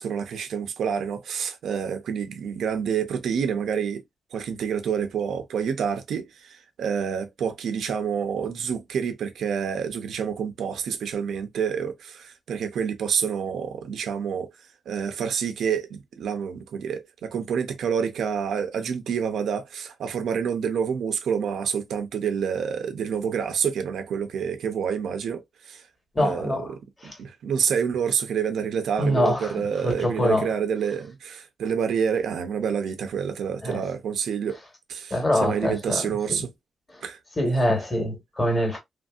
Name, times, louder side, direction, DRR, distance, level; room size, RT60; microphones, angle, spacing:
voice 1, 0.0-4.0 4.3-14.5 14.9-25.8 26.2-26.8 27.0-34.6 34.9-36.5 37.0-37.2, right 7 dB, 80° right, 0.6 m, -28 dB
voice 2, 26.1-26.7 27.0-27.2 29.0-30.5 33.6-33.8 35.1-36.5 36.9-37.0 37.4-38.8, left 1 dB, 20° left, 1.2 m, -25 dB
3.1 x 2.6 x 2.3 m
wide cardioid pair, 175°, 0 cm